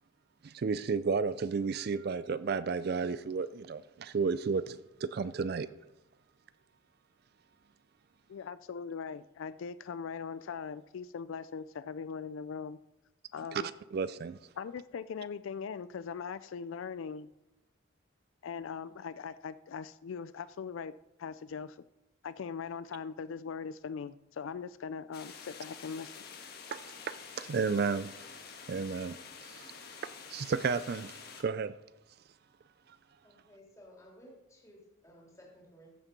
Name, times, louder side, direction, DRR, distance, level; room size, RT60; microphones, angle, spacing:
voice 1, 0.4-5.7 13.5-13.6 13.9-14.4 26.7-28.4 28.7-29.7 30.0-31.7, right 5 dB, 50° right, 0.3 m, -33 dB
voice 2, 8.3-12.8 13.3-13.7 14.6-17.3 18.4-20.9 21.2-21.8 22.2-26.1, left 6 dB, 75° left, 0.4 m, -40 dB
sound 1, 25.1-31.4, left 6 dB, 50° left, 1.5 m, -48 dB
voice 3, 33.2-35.9, equal, 15° left, 2.9 m, -56 dB
14.5 x 7.2 x 5.2 m
head